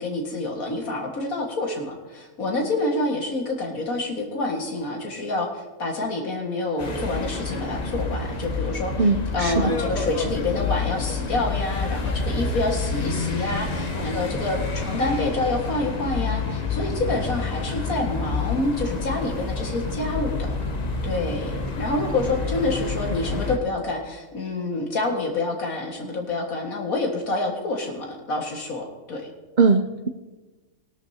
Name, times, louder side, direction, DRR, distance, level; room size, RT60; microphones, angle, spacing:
voice 1, 0.0-8.9 9.3-20.5 21.0-29.3, left 2 dB, 80° left, 1 dB, 2.2 m, -27 dB
sound 1, 6.8-23.6, left 4 dB, 35° left, 1.0 m, -28 dB
voice 2, 9.0-9.7 29.6-30.1, right 4 dB, 65° right, 6 dB, 0.4 m, -20 dB
18.0 x 12.5 x 2.8 m, 1.2 s
omnidirectional pair, 1.5 m